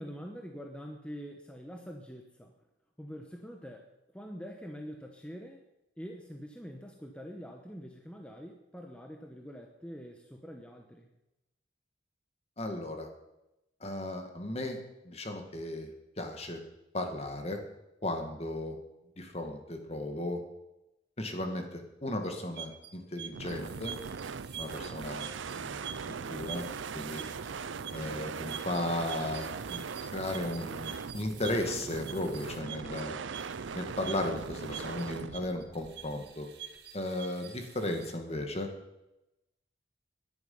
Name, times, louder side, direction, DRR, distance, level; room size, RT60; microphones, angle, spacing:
voice 1, 0.0-2.5 3.0-3.9 4.1-5.6 6.0-11.1, equal, 5° left, 2 dB, 1.0 m, -45 dB
voice 2, 12.6-13.1 13.8-14.8 15.0-15.9 16.2-16.6 16.9-17.6 18.0-18.8 19.2-20.4 21.2-24.0 24.5-25.3 25.6-25.9 26.3-27.2 27.9-29.8 30.1-33.1 33.7-36.5 36.9-38.7, left 1 dB, 35° left, 4 dB, 2.0 m, -35 dB
sound 1, 22.2-38.1, right 9 dB, 60° right, 1.6 m, -47 dB
sound 2, 23.3-35.5, right 5 dB, 85° right, 0.6 m, -40 dB
17.5 x 11.0 x 5.6 m, 0.94 s
head